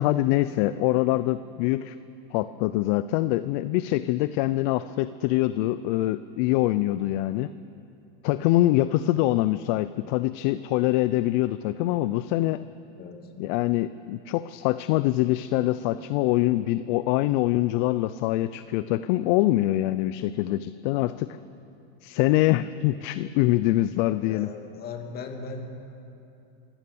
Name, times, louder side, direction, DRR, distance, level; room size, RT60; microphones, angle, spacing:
voice 1, 0.0-1.9 2.3-7.5 8.2-12.6 13.4-21.4 22.0-24.5, left 16 dB, 55° left, 14 dB, 0.6 m, -24 dB
voice 2, 13.0-13.3 24.2-25.6, left 4 dB, 30° left, 4 dB, 2.7 m, -38 dB
23.5 x 16.5 x 7.0 m, 2.7 s
supercardioid pair, 125°, 29 cm